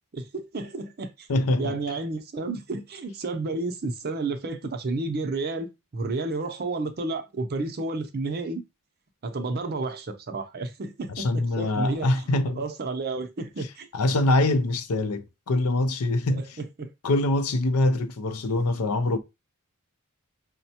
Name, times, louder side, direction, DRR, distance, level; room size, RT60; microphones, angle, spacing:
voice 1, 0.1-1.3 1.6-5.7 5.9-8.6 9.2-12.1 12.6-13.9 16.3-16.9, right 3 dB, 45° right, 0.6 m, -31 dB
voice 2, 1.3-2.0 11.1-12.6 13.9-16.6 17.0-19.2, left 2 dB, 80° left, 0.5 m, -24 dB
5.1 x 2.1 x 2.8 m
head